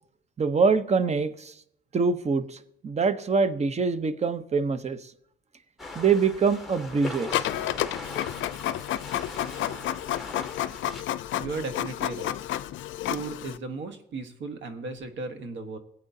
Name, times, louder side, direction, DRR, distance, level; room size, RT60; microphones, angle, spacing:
voice 1, 0.4-1.5 1.9-2.6 2.8-5.0 5.9-7.3, right 5 dB, 35° right, 12 dB, 0.8 m, -24 dB
sound 1, 5.8-11.0, left 2 dB, ahead, 2.0 m, -40 dB
Printer, 7.3-13.6, left 12 dB, 75° left, 0.5 m, -30 dB
voice 2, 11.4-12.4 13.0-15.8, right 3 dB, 70° right, 7 dB, 1.3 m, -35 dB
18.0 x 8.6 x 2.7 m, 0.72 s
cardioid pair, 90°, 20 cm